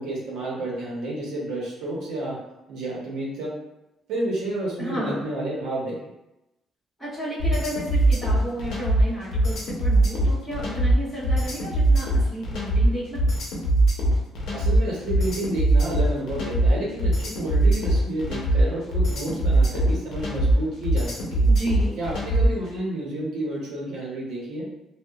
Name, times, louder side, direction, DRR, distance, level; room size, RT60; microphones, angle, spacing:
voice 1, 0.0-2.4 2.7-3.5 4.1-6.0 14.5-21.5 22.0-24.7, right 1 dB, 80° right, -4 dB, 0.8 m, -30 dB
voice 2, 4.8-5.2 7.0-13.2 21.5-21.9, right 1 dB, 5° left, -11 dB, 1.2 m, -32 dB
sound 1, 7.4-22.6, right 1 dB, 70° left, 0.7 m, -21 dB
2.8 x 2.1 x 2.3 m, 0.92 s
cardioid pair, 150°, 0 cm